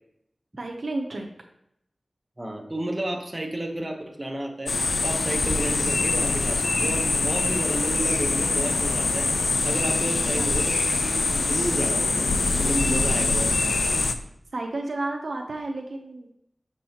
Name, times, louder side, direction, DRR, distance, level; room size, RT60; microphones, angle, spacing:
voice 1, 0.6-1.3 10.3-10.5 12.9-13.4 14.5-16.4, right 2 dB, 80° right, 2 dB, 0.7 m, -32 dB
voice 2, 2.4-4.7 5.0-9.3 9.6-12.3 12.6-13.5, right 1 dB, 25° right, 2 dB, 1.1 m, -31 dB
sound 1, 4.7-14.1, left 3 dB, 85° left, 0.4 m, -24 dB
6.3 x 6.1 x 2.9 m, 0.77 s
wide cardioid pair, 65°, 0 cm